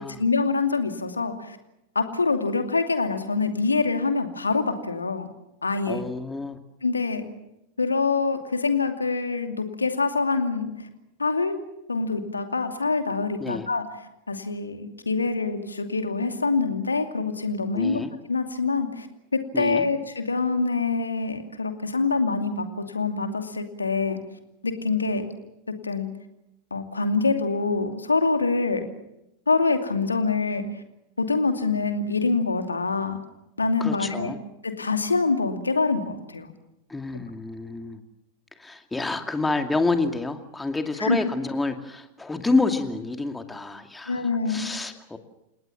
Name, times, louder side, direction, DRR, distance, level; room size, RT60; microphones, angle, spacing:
voice 1, 0.0-1.6 1.9-5.3 5.6-6.0 6.8-7.2 7.8-10.7 11.2-11.6 11.9-13.9 14.3-18.0 18.3-19.1 19.3-24.2 24.6-25.3 25.8-26.1 26.7-28.9 29.5-30.6 31.2-33.2 33.6-34.3 34.6-36.5 41.0-41.2 44.1-44.7, left 4 dB, 80° left, 6 dB, 2.5 m, -25 dB
voice 2, 5.9-6.6 13.4-13.7 17.7-18.1 19.5-19.9 33.8-34.4 36.9-38.0 38.6-44.2 44.5-45.2, left 3 dB, 10° left, 6 dB, 2.4 m, -28 dB
29.0 x 18.5 x 7.3 m, 0.87 s
figure-of-eight pair, 90°, 0 cm